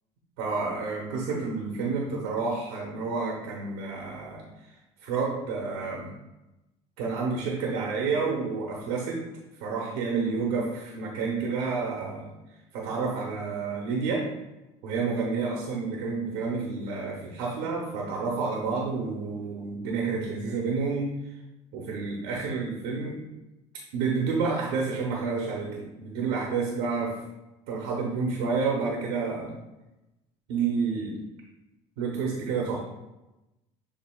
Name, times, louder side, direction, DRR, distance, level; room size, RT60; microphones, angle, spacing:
voice 1, 0.4-4.4 5.0-6.1 7.0-9.2 9.6-12.3 12.7-14.2 14.8-21.1 21.7-23.2 23.9-27.1 27.7-29.6 30.5-31.1 32.0-32.8, right 4 dB, 80° right, -1 dB, 0.8 m, -29 dB
7.0 x 2.7 x 2.3 m, 1.0 s
supercardioid pair, 80°, 16 cm